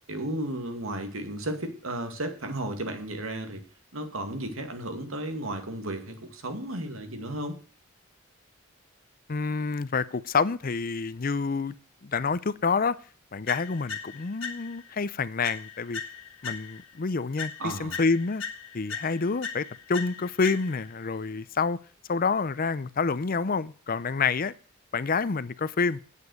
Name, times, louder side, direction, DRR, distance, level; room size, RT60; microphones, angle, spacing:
voice 1, 0.1-3.6 3.9-7.6 17.6-18.0, right 1 dB, 85° right, 6 dB, 2.3 m, -34 dB
voice 2, 9.3-11.7 12.0-13.0 13.3-16.0 16.4-18.4 18.7-21.8 22.1-24.5 24.9-26.0, left 4 dB, 45° left, 17 dB, 0.6 m, -28 dB
sound 1, 13.5-14.9 15.4-17.0 17.4-21.0, left 5 dB, 70° left, 1.7 m, -39 dB
9.7 x 8.2 x 6.5 m, 0.41 s
head